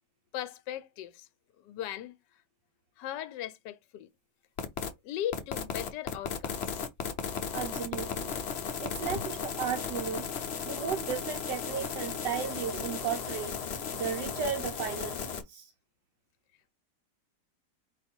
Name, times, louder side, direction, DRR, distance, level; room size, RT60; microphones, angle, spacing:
voice 1, 0.3-1.3 1.6-2.1 3.0-4.1 5.0-6.8 9.0-9.2, left 11 dB, 80° left, 1.2 m, -38 dB
sound 1, 4.6-4.9 5.3-15.4, left 6 dB, 50° left, 0.8 m, -35 dB
voice 2, 7.2-8.3 8.8-10.3 10.6-15.7, right 7 dB, 80° right, 1.4 m, -35 dB
4.8 x 2.5 x 4.3 m
omnidirectional pair, 1.9 m